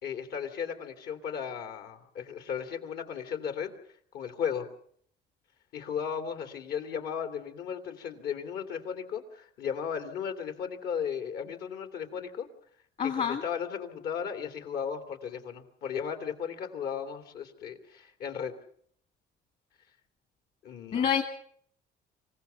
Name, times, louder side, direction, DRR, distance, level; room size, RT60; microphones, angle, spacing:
voice 1, 0.0-3.7 4.1-4.7 5.7-12.5 13.0-18.5 20.6-21.1, left 7 dB, 70° left, 7 dB, 2.8 m, -35 dB
voice 2, 13.0-13.4 20.9-21.2, left 7 dB, 50° left, 6 dB, 2.0 m, -26 dB
26.0 x 16.5 x 7.0 m, 0.64 s
cardioid pair, 110°, 17 cm